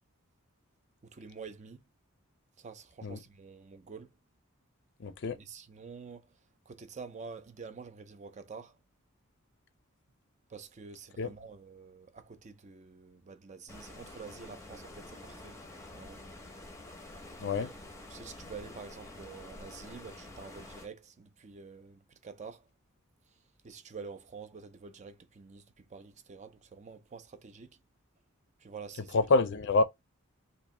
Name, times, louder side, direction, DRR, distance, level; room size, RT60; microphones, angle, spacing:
voice 1, 1.0-1.8 2.6-4.1 5.3-6.3 6.7-8.8 10.5-15.6 15.9-16.2 17.4-22.7 23.6-27.8 28.6-29.2, right 5 dB, 35° right, 0.5 m, -48 dB
voice 2, 5.0-5.4 11.2-11.3 17.4-17.7 29.1-29.8, left 3 dB, 55° left, 0.5 m, -27 dB
Stream, 13.7-20.9, left 2 dB, 15° left, 0.7 m, -48 dB
3.0 x 2.5 x 3.6 m
head